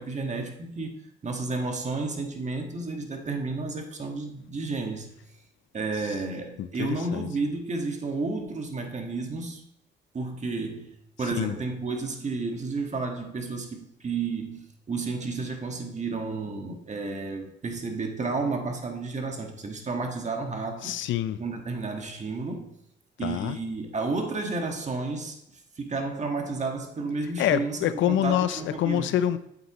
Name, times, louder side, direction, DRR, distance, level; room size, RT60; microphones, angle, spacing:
voice 1, 0.0-5.1 5.7-9.6 10.1-10.9 11.2-20.9 21.4-22.7 23.2-29.1, right 3 dB, 35° right, 3 dB, 1.5 m, -32 dB
voice 2, 6.6-7.3 11.4-11.6 20.8-21.4 23.2-23.6 27.4-29.4, left 11 dB, 75° left, 13 dB, 0.5 m, -26 dB
8.1 x 8.0 x 3.0 m, 0.75 s
cardioid pair, 90°, 20 cm